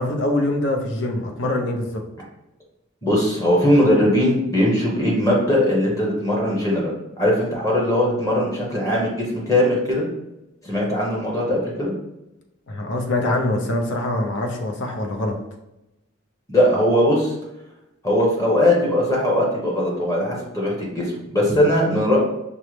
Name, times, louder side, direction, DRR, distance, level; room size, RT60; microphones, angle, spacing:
voice 1, 0.0-2.0 12.7-15.4, left 1 dB, 60° left, 2 dB, 0.6 m, -24 dB
voice 2, 3.0-6.9 7.2-10.1 10.6-11.9 16.5-17.3 18.0-22.2, left 1 dB, 15° left, -4 dB, 0.9 m, -20 dB
5.4 x 2.1 x 3.1 m, 0.92 s
head